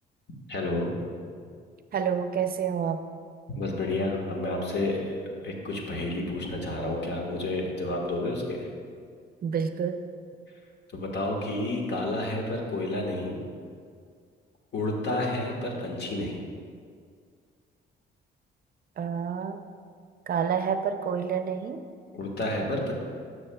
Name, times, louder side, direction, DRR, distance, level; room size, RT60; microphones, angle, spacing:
voice 1, 0.5-0.9 3.5-8.7 10.9-13.4 14.7-16.4 22.1-22.9, left 2 dB, 60° left, 0 dB, 1.4 m, -30 dB
voice 2, 1.9-3.0 9.4-10.0 19.0-19.6 20.3-21.8, right 7 dB, 50° right, 8 dB, 0.5 m, -28 dB
12.5 x 6.2 x 2.2 m, 2.1 s
cardioid pair, 90°, 20 cm